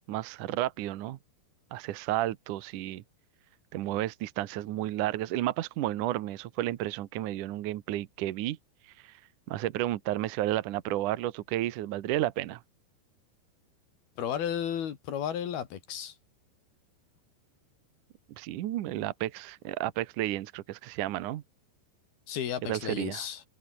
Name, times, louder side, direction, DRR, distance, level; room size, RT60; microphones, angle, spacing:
voice 1, 0.1-1.2 1.7-3.0 3.7-8.6 9.0-9.1 9.5-12.6 18.4-21.4 22.6-23.3, right 14 dB, 75° right, 1.9 m, -32 dB
voice 2, 14.2-16.1 22.3-23.4, left 9 dB, 60° left, 4.0 m, -33 dB
omnidirectional pair, 5.1 m